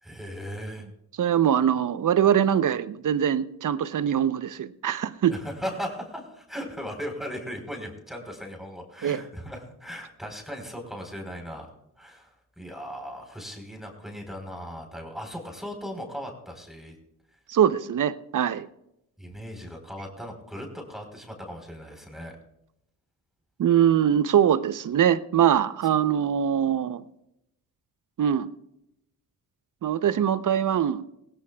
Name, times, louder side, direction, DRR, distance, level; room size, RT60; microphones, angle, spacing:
voice 1, 0.0-0.9 5.3-12.3 12.6-17.0 19.2-22.4, equal, ahead, 2 dB, 4.0 m, -38 dB
voice 2, 1.2-5.3 9.0-9.2 17.5-18.7 23.6-27.0 28.2-28.5 29.8-31.0, right 9 dB, 55° right, 15 dB, 0.8 m, -23 dB
20.5 x 16.5 x 2.3 m, 0.83 s
supercardioid pair, 50°, 39 cm